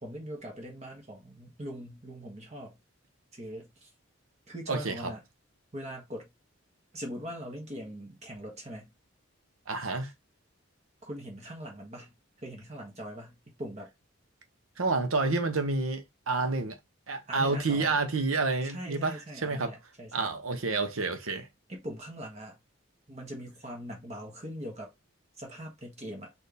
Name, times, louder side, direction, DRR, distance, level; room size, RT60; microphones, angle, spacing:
voice 1, 0.0-2.8 3.3-3.9 4.5-5.2 5.7-6.3 6.9-8.9 11.0-12.1 12.4-13.9 17.3-18.0 18.6-20.3 21.7-22.6 23.1-24.9 25.4-26.3, equal, 35° right, 1.4 m, -41 dB
voice 2, 4.7-5.1 9.7-10.1 14.8-16.8 17.1-19.7 20.1-21.5, right 3 dB, 85° right, 0.9 m, -29 dB
4.4 x 2.7 x 3.3 m
head